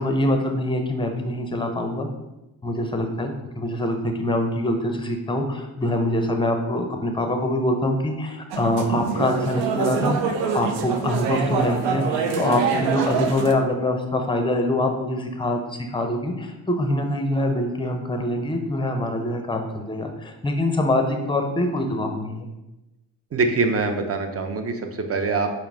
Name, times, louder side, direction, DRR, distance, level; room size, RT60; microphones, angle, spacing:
voice 1, 0.0-2.1 2.6-10.2 10.5-22.5, left 1 dB, 10° left, 4 dB, 0.6 m, -24 dB
sound 1, 8.5-13.5, right 6 dB, 80° right, 0.6 m, -25 dB
voice 2, 23.3-25.5, right 3 dB, 30° right, 6 dB, 0.6 m, -24 dB
4.6 x 2.1 x 3.4 m, 0.99 s
supercardioid pair, 55°, 45 cm